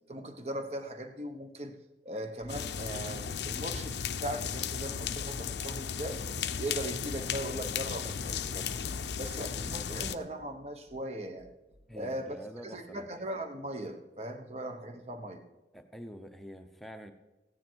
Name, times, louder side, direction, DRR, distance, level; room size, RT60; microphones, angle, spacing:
voice 1, 0.1-1.8 2.0-6.2 6.6-8.7 9.2-11.5 11.9-12.4 12.6-15.4, right 1 dB, 35° right, 6 dB, 1.2 m, -39 dB
sound 1, 2.5-10.1, left 7 dB, 70° left, 0.6 m, -35 dB
sound 2, 10.4-11.1 11.4-12.0, equal, 50° right, 2.0 m, -61 dB
voice 2, 11.9-13.1 15.7-17.1, equal, ahead, 6 dB, 0.8 m, -46 dB
15.0 x 10.0 x 4.6 m, 1.0 s
head